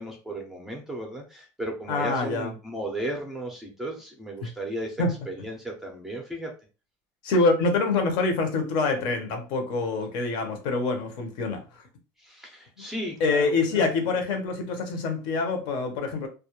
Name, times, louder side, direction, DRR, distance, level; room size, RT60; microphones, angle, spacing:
voice 1, 0.0-6.5 12.2-13.9, right 1 dB, 5° right, 0.4 m, -35 dB
voice 2, 1.9-2.5 4.4-4.5 5.0-5.1 7.2-11.6 13.2-16.3, left 3 dB, 65° left, 0.7 m, -25 dB
2.2 x 2.1 x 2.9 m
cardioid pair, 160°, 9 cm